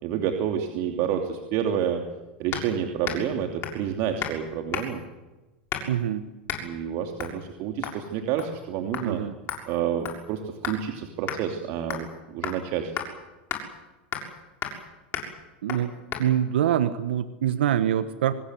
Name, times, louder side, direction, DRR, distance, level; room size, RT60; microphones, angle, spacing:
voice 1, 0.0-2.0 2.4-5.0 6.6-9.2 9.7-12.9, right 9 dB, 55° right, 3 dB, 2.9 m, -29 dB
sound 1, 2.5-2.7 3.0-3.3 3.6-3.9 4.2-4.4 4.7-5.1 5.7-6.0 6.5-6.7 7.2-7.4 7.8-8.0 8.4-8.7 8.9-9.1 9.5-10.8 11.3-11.4 11.9-12.1 12.4-12.6 13.0-13.1 13.5-13.6 14.1-14.3 14.6-14.8 15.1-15.3 15.7-15.8 16.1-16.2, left 8 dB, 40° left, 6.8 m, -33 dB
voice 2, 5.9-6.2 9.0-9.3 15.6-15.9 16.2-18.3, right 10 dB, 75° right, 11 dB, 1.3 m, -24 dB
26.0 x 20.5 x 8.0 m, 1.1 s
hypercardioid pair, 100°, 6 cm